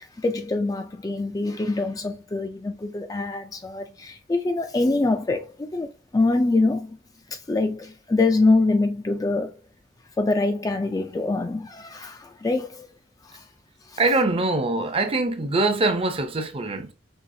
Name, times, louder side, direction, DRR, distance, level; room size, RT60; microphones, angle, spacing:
voice 1, 0.0-5.9 6.1-7.0 7.5-9.5 10.2-12.9 13.3-13.4 13.9-14.0, left 2 dB, 20° left, 0.3 m, -24 dB
voice 2, 14.0-16.9, right 2 dB, 30° right, 0.6 m, -23 dB
5.5 x 2.9 x 2.7 m
head